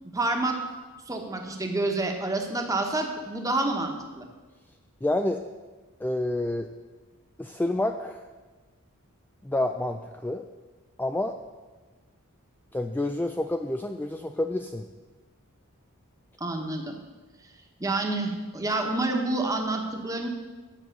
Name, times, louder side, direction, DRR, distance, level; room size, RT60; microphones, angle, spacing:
voice 1, 0.1-0.6 1.1-4.3 16.4-17.0 17.8-20.3, right 2 dB, 15° right, 3 dB, 1.2 m, -28 dB
voice 2, 5.0-5.4 6.0-6.7 7.4-8.3 9.4-10.4 11.0-11.4 12.7-14.9, left 1 dB, 10° left, 5 dB, 0.3 m, -28 dB
10.0 x 7.7 x 6.7 m, 1.3 s
head